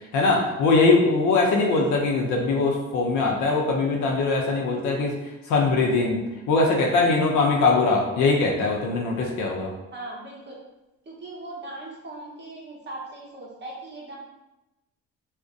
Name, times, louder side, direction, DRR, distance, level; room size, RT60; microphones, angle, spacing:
voice 1, 0.1-5.1 5.5-9.7, left 3 dB, 80° left, -1 dB, 0.5 m, -21 dB
voice 2, 9.9-10.5 11.1-14.2, right 2 dB, 35° right, -3 dB, 0.8 m, -39 dB
2.5 x 2.1 x 2.4 m, 0.97 s
cardioid pair, 90°, 30 cm